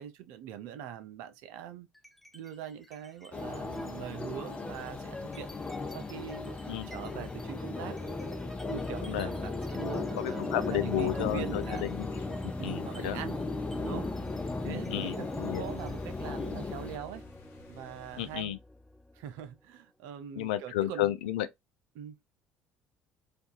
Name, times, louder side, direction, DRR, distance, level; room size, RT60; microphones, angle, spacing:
voice 1, 0.0-1.9 2.3-5.5 5.9-8.0 8.7-11.9 12.6-13.4 13.8-14.1 14.6-17.3 17.7-18.5 19.1-21.1 21.9-22.2, right 9 dB, 70° right, 0.4 m, -42 dB
sound 1, 1.9-2.5 2.8-19.4, left 1 dB, 5° left, 0.4 m, -42 dB
sound 2, 3.3-17.0, left 4 dB, 25° left, 0.8 m, -38 dB
voice 2, 10.1-12.1 12.4-13.2 14.6-15.6 18.2-18.6 20.4-21.5, left 13 dB, 80° left, 0.3 m, -32 dB
sound 3, 11.1-18.4, left 5 dB, 55° left, 0.8 m, -56 dB
2.6 x 2.3 x 2.2 m
hypercardioid pair, 60°, 5 cm